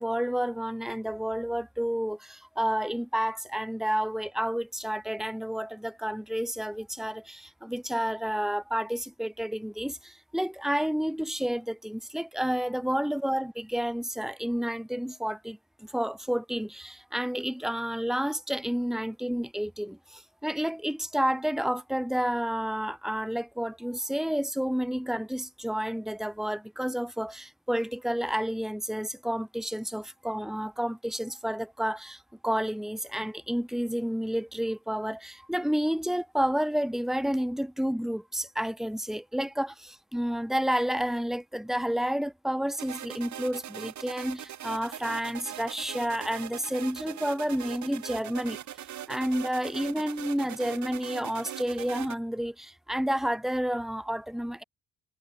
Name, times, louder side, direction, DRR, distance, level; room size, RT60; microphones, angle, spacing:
voice 1, 0.0-48.6 49.1-54.6, equal, ahead, 4.2 m, -30 dB
sound 1, 42.8-52.2, right 11 dB, 70° right, 2.7 m, -41 dB
cardioid pair, 90°, 30 cm